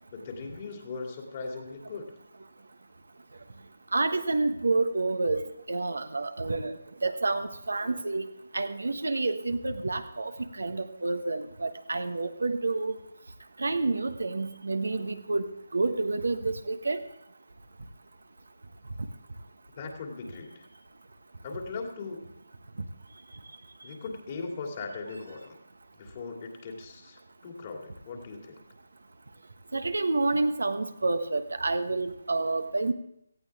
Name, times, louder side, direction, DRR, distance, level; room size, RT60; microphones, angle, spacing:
voice 1, 0.1-2.2 19.8-20.6 21.4-22.2 23.8-25.6 25.9-28.6, left 4 dB, 35° left, 2 dB, 2.6 m, -39 dB
voice 2, 3.9-5.4 5.7-6.8 7.0-8.3 8.5-10.3 10.6-12.9 13.6-17.0 29.7-32.9, right 3 dB, 70° right, 8 dB, 1.2 m, -29 dB
18.0 x 14.5 x 3.6 m, 0.78 s
figure-of-eight pair, 150°, 0 cm